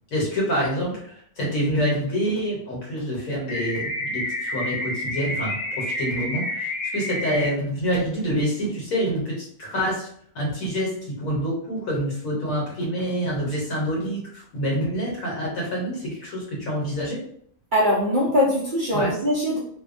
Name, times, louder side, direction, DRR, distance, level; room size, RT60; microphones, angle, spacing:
voice 1, 0.1-10.1 10.3-17.2 18.9-19.1, equal, 65° left, -3 dB, 1.2 m, -27 dB
sound 1, 3.5-7.5, left 1 dB, 25° left, 0.9 m, -29 dB
voice 2, 17.7-19.6, left 1 dB, 65° right, -7 dB, 0.5 m, -21 dB
2.7 x 2.2 x 2.4 m, 0.64 s
omnidirectional pair, 1.6 m